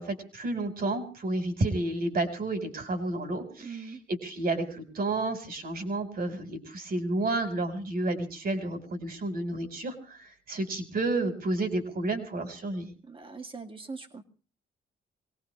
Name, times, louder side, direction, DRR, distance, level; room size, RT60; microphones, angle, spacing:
voice 1, 0.0-12.9, right 2 dB, 50° right, 7 dB, 4.3 m, -31 dB
voice 2, 3.6-4.0 13.0-14.2, right 4 dB, 25° right, 5 dB, 2.2 m, -41 dB
24.0 x 18.5 x 3.2 m, 0.38 s
cardioid pair, 90°, 20 cm